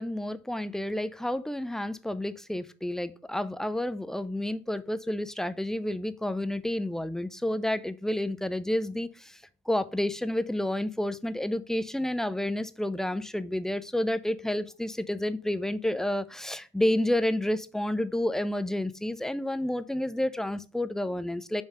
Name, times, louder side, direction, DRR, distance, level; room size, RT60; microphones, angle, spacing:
voice 1, 0.0-21.6, left 1 dB, ahead, 13 dB, 0.3 m, -30 dB
5.4 x 3.5 x 5.0 m, 0.35 s
supercardioid pair, 70°, 39 cm